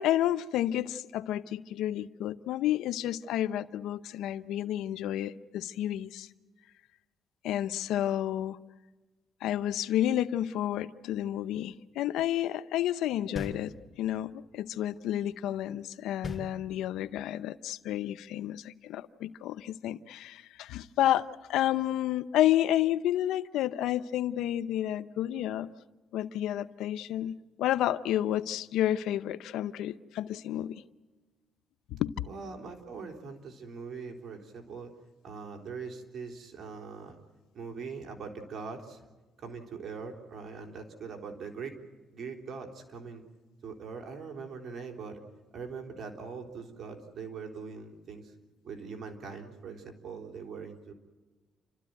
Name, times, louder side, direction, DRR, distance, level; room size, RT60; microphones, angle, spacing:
voice 1, 0.0-6.3 7.4-8.6 9.4-13.7 14.0-25.7 26.1-30.8 31.9-32.1, left 12 dB, 90° left, 14 dB, 0.7 m, -30 dB
sound 1, 13.4-14.3 16.2-17.2, left 3 dB, 25° left, 3.2 m, -41 dB
voice 2, 32.3-34.9 35.2-37.2 37.5-39.0 39.4-41.8 42.1-43.2 43.6-45.2 45.5-48.3 48.6-50.9, right 5 dB, 60° right, 4 dB, 3.6 m, -42 dB
30.0 x 13.5 x 9.3 m, 1.3 s
cardioid pair, 90°, 0 cm